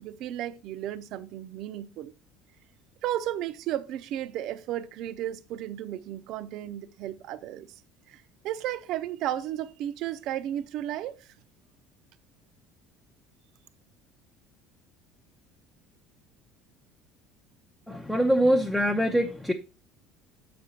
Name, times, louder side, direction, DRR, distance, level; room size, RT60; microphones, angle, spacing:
voice 1, 0.0-2.1 3.0-7.7 8.1-11.3, right 12 dB, 60° right, 0.5 m, -34 dB
voice 2, 17.9-19.5, equal, ahead, 0.6 m, -24 dB
7.1 x 5.2 x 4.2 m
cardioid pair, 140°, 0 cm